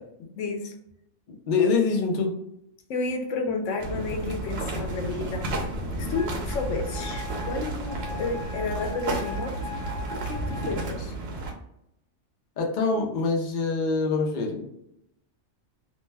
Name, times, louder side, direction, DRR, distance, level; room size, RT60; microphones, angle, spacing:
voice 1, 0.2-0.7 2.9-5.5 6.0-9.7 10.3-11.1, left 4 dB, 80° left, 3 dB, 0.9 m, -31 dB
voice 2, 1.3-2.3 12.6-14.6, left 4 dB, 50° left, 0 dB, 0.6 m, -25 dB
sound 1, 3.8-11.5, right 2 dB, 60° right, 0.9 m, -32 dB
sound 2, 4.0-10.8, left 1 dB, 35° right, 0.9 m, -40 dB
Wind instrument woodwind instrument, 6.1-10.9, left 2 dB, 5° left, 0.4 m, -40 dB
2.5 x 2.1 x 3.2 m, 0.81 s
omnidirectional pair, 1.3 m